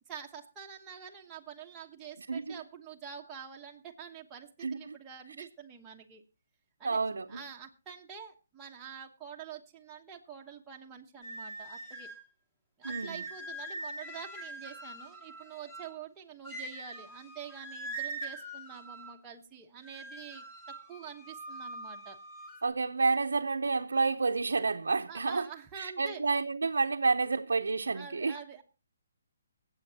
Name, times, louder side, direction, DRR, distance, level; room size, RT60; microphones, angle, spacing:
voice 1, 0.1-6.2 6.8-7.0 7.3-12.1 12.8-20.4 20.9-22.2 25.1-26.2 27.9-28.6, right 7 dB, 15° right, 1.1 m, -46 dB
voice 2, 2.3-2.6 4.6-5.0 5.4-5.5 6.8-7.4 12.8-13.2 22.6-25.5 25.8-28.4, right 4 dB, 90° right, 0.7 m, -30 dB
sound 1, 11.2-12.3 12.8-16.0 16.4-19.2 19.8-22.7, right 2 dB, 10° left, 2.2 m, -43 dB
23.0 x 7.9 x 2.8 m
hypercardioid pair, 160°, 0 cm